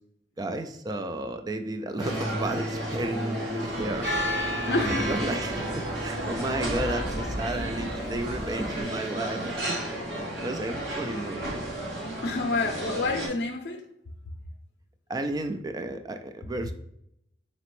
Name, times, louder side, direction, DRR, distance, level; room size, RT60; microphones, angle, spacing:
voice 1, 0.4-4.1 4.6-11.5 15.1-16.7, right 1 dB, 20° right, 7 dB, 0.3 m, -33 dB
Guitar, 2.0-8.7, left 1 dB, 20° left, 0.7 m, -39 dB
sound 1, 2.0-13.3, right 1 dB, 85° right, 1.2 m, -34 dB
sound 2, 3.7-8.8, equal, 70° right, 1.1 m, -33 dB
voice 2, 4.6-5.0 12.2-13.9, left 3 dB, 75° left, 2 dB, 0.5 m, -28 dB
4.1 x 2.9 x 3.0 m, 0.75 s
head